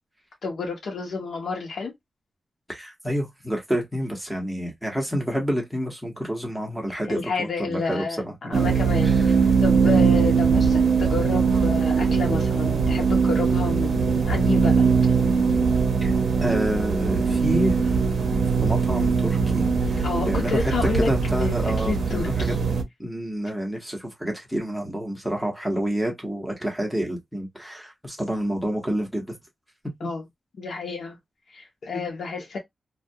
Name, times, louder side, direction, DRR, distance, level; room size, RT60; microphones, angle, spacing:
voice 1, 0.4-1.9 7.0-9.1 9.6-14.9 20.0-21.1 21.4-22.6 30.0-30.2 30.6-31.2 31.5-32.6, left 4 dB, 90° left, 0.7 m, -30 dB
voice 2, 2.7-8.7 9.0-9.3 9.8-10.1 16.0-16.1 16.4-18.0 18.6-22.5 23.0-29.3 30.0-30.1, equal, ahead, 0.9 m, -28 dB
sound 1, 8.5-22.8, right 5 dB, 75° right, 0.5 m, -21 dB
2.2 x 2.2 x 2.6 m
wide cardioid pair, 160°, 0 cm